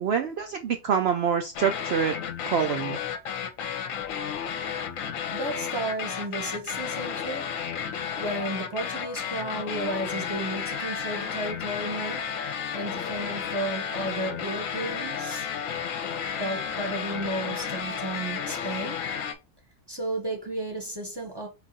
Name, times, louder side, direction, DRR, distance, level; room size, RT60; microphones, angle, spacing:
voice 1, 0.0-2.1 2.4-3.0, right 7 dB, 90° right, 0.5 m, -26 dB
sound 1, 1.5-19.3, left 7 dB, 65° left, 1.0 m, -32 dB
voice 2, 5.3-19.1 19.9-21.5, right 2 dB, 20° right, 0.8 m, -34 dB
4.7 x 2.4 x 3.9 m
omnidirectional pair, 1.6 m